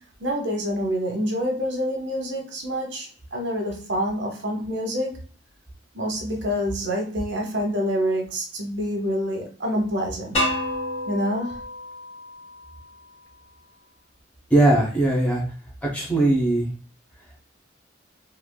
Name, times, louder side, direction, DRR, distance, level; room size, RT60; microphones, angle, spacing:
voice 1, 0.2-5.2 5.9-10.4 11.1-11.6, equal, 65° right, 1 dB, 0.9 m, -27 dB
sound 1, 10.3-13.2, left 1 dB, 30° left, 1.6 m, -30 dB
voice 2, 14.5-15.4 15.9-16.7, right 2 dB, 5° left, -3 dB, 0.9 m, -19 dB
3.3 x 2.7 x 2.2 m, 0.40 s
head